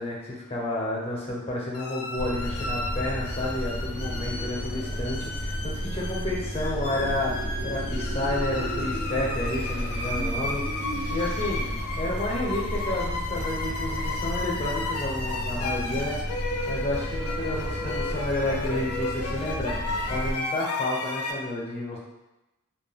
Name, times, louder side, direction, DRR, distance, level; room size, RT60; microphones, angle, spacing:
voice 1, 0.0-11.6 12.0-16.2 16.7-19.7 20.1-22.0, left 1 dB, 25° left, -4 dB, 0.5 m, -31 dB
sound 1, 1.7-21.3, left 3 dB, 80° left, 0.4 m, -34 dB
sound 2, 2.2-20.3, equal, 55° right, 0.6 m, -33 dB
sound 3, 5.6-12.1, right 1 dB, 90° right, 1.1 m, -40 dB
2.2 x 2.1 x 3.4 m, 0.97 s
head